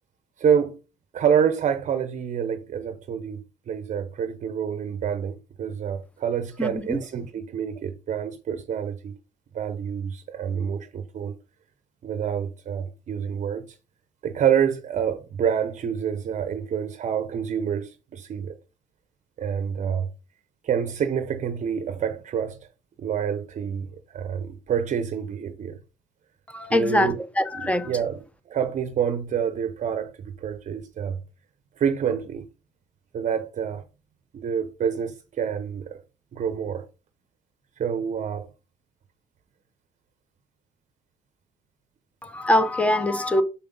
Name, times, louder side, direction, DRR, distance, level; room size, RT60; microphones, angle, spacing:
voice 1, 0.4-0.8 1.1-9.1 9.5-11.3 12.0-13.8 14.2-18.6 19.4-20.1 20.6-22.6 23.0-25.8 26.7-27.2 27.5-28.2 28.5-31.2 31.8-32.5 33.1-33.8 34.3-36.0 36.3-36.9 37.8-38.5, right 8 dB, 45° right, 0.8 m, -27 dB
voice 2, 6.6-7.0 26.5-27.9 42.2-43.4, left 1 dB, 10° left, 0.9 m, -23 dB
7.1 x 5.1 x 3.8 m
cardioid pair, 110°, 17 cm